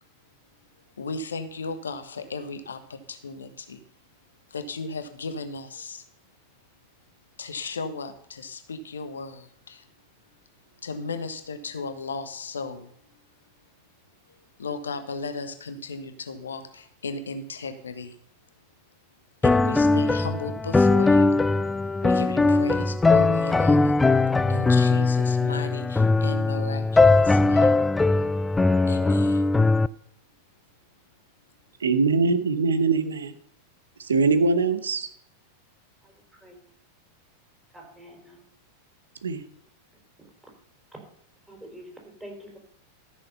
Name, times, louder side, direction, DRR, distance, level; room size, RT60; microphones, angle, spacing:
voice 1, 1.0-3.8 4.5-6.0 7.4-9.8 10.8-12.9 14.3-18.2 19.4-21.4 22.0-24.0 24.5-27.8 28.9-29.4, left 3 dB, 70° left, 1.3 m, -35 dB
sound 1, 19.4-29.9, left 3 dB, 10° left, 0.3 m, -20 dB
voice 2, 31.8-33.3 34.0-35.1 39.2-39.4, right 4 dB, 70° right, 1.0 m, -22 dB
voice 3, 37.7-38.4 40.2-40.3 41.5-41.9 42.2-42.6, equal, 5° right, 4.6 m, -45 dB
13.5 x 6.5 x 5.6 m
figure-of-eight pair, 90°, 0 cm